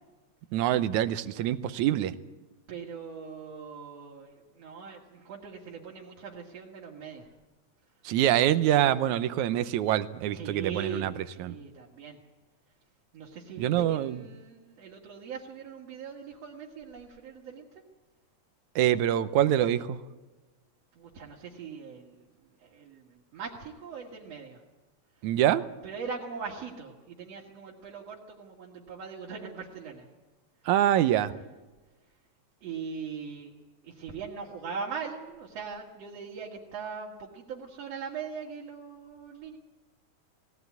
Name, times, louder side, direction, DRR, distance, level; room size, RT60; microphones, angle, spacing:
voice 1, 0.5-2.1 8.1-11.6 13.6-14.2 18.8-20.0 25.2-25.6 30.7-31.3, right 12 dB, 80° right, 13 dB, 2.2 m, -25 dB
voice 2, 2.7-7.3 10.3-12.2 13.1-17.6 21.0-22.2 22.6-24.6 25.8-30.1 32.6-33.5 33.8-39.6, right 6 dB, 60° right, -3 dB, 3.0 m, -41 dB
20.0 x 17.0 x 9.4 m, 1.2 s
omnidirectional pair, 3.4 m